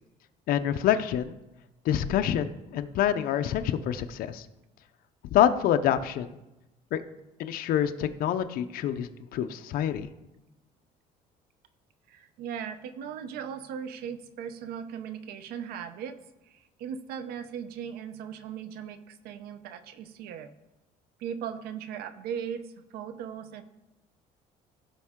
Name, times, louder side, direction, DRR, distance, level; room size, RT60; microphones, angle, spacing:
voice 1, 0.5-1.4 1.8-4.5 5.3-6.3 6.9-7.0 7.4-10.1, left 10 dB, 65° left, 9 dB, 0.6 m, -26 dB
voice 2, 12.1-16.2 16.5-20.5 21.2-22.6 22.9-23.6, right 8 dB, 80° right, 11 dB, 0.7 m, -38 dB
16.0 x 5.3 x 3.6 m, 0.97 s
cardioid pair, 125°, 16 cm